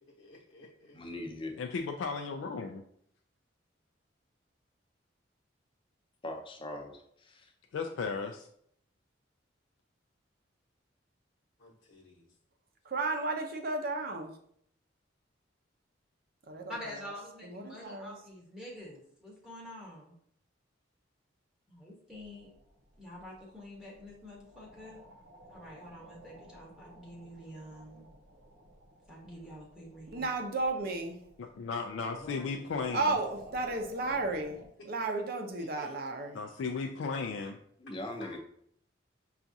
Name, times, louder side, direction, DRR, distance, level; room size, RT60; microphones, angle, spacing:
voice 1, 0.0-1.0 11.6-12.4 32.1-33.3 34.8-34.9 35.6-36.0 36.3-36.6 37.0-37.5 38.2-38.4, left 2 dB, 70° left, -7 dB, 1.0 m, -53 dB
voice 2, 0.9-1.6 6.2-7.5 37.8-38.4, left 1 dB, 30° left, 3 dB, 0.6 m, -41 dB
voice 3, 1.6-2.8 7.7-8.5 31.6-33.1 36.3-37.5, left 4 dB, 85° left, 3 dB, 0.3 m, -35 dB
voice 4, 12.8-14.3 16.5-16.8 17.4-18.1 30.1-31.2 32.9-34.6 34.9-36.4, right 3 dB, 50° right, 4 dB, 0.6 m, -33 dB
voice 5, 16.7-20.1 21.7-22.5 23.0-25.0 25.5-28.1 29.1-30.3, left 1 dB, 5° right, -4 dB, 0.9 m, -47 dB
sound 1, 22.1-34.7, right 1 dB, 85° right, 0.8 m, -56 dB
5.8 x 2.4 x 2.6 m, 0.68 s
head